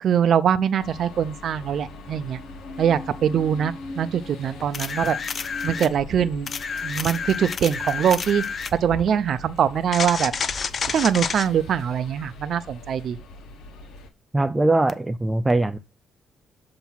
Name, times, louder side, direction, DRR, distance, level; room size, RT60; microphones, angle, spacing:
voice 1, 0.0-2.4 2.8-5.2 5.6-6.5 6.8-8.4 8.7-10.3 10.9-13.2, right 8 dB, 65° right, 0.6 m, -23 dB
sound 1, 0.8-14.1, left 2 dB, 80° left, 1.2 m, -41 dB
sound 2, 4.2-4.7 5.2-5.4 5.7-6.8 7.1-10.8, left 2 dB, 25° left, 3.5 m, -43 dB
sound 3, 4.7-5.9 6.5-8.8 9.9-11.5 14.9-15.0, left 6 dB, 45° left, 0.5 m, -29 dB
voice 2, 14.3-15.8, right 2 dB, 15° right, 0.4 m, -21 dB
7.3 x 2.9 x 5.5 m
cardioid pair, 90°, 0 cm